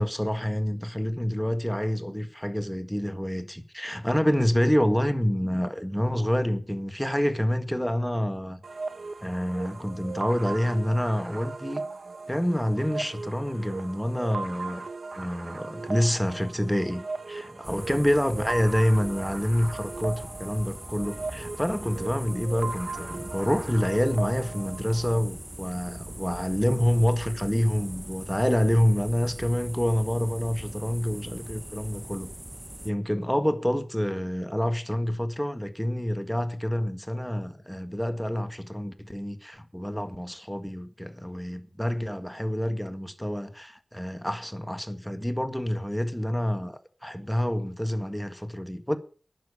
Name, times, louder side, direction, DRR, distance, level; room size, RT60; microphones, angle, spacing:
voice 1, 0.0-8.6 9.2-11.8 12.3-14.9 15.2-32.3 32.8-49.0, equal, 5° left, 1.7 m, -27 dB
sound 1, 8.6-25.2, right 3 dB, 85° right, 1.7 m, -38 dB
sound 2, 17.6-32.9, right 1 dB, 15° right, 1.0 m, -41 dB
12.0 x 9.3 x 7.1 m
cardioid pair, 45°, 0 cm